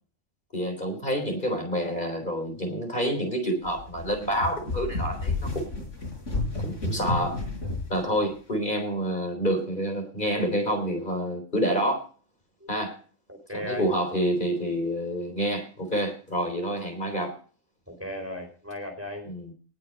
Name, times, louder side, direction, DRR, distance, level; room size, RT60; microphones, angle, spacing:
voice 1, 0.5-5.9 6.6-7.4 7.9-12.0 12.7-13.0 13.5-17.4 19.3-19.5, equal, 40° left, 4 dB, 3.9 m, -28 dB
sound 1, 3.6-8.0, left 2 dB, 70° left, 5.6 m, -31 dB
voice 2, 13.3-13.9 17.9-19.2, left 1 dB, 10° right, 3 dB, 4.0 m, -36 dB
19.0 x 6.6 x 5.3 m, 0.39 s
omnidirectional pair, 1.3 m